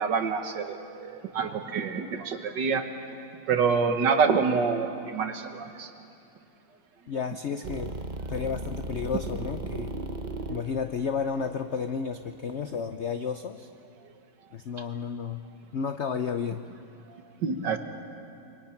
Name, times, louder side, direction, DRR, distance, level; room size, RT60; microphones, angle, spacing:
voice 1, 0.0-2.9 3.5-5.9 17.4-17.8, right 5 dB, 65° right, 7 dB, 1.9 m, -26 dB
voice 2, 7.1-8.0 8.3-9.9 10.5-13.7 14.5-16.7, left 6 dB, 85° left, 8 dB, 0.6 m, -32 dB
sound 1, 7.6-12.8, right 3 dB, 40° right, 0.7 m, -36 dB
27.0 x 24.0 x 5.9 m, 2.6 s
omnidirectional pair, 2.1 m